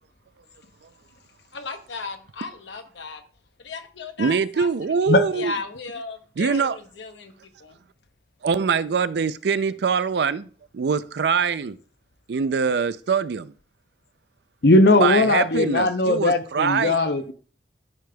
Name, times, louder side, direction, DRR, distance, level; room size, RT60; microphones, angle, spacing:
voice 1, 1.5-3.2 3.6-4.7 5.0-7.3 7.6-7.8, left 3 dB, 85° left, 1.0 m, -35 dB
voice 2, 4.2-5.5 6.4-6.8 8.4-11.8 12.3-13.5 15.0-17.0, right 5 dB, 65° right, 0.4 m, -23 dB
voice 3, 14.6-17.3, left 2 dB, 60° left, 0.7 m, -18 dB
12.5 x 5.1 x 2.3 m
head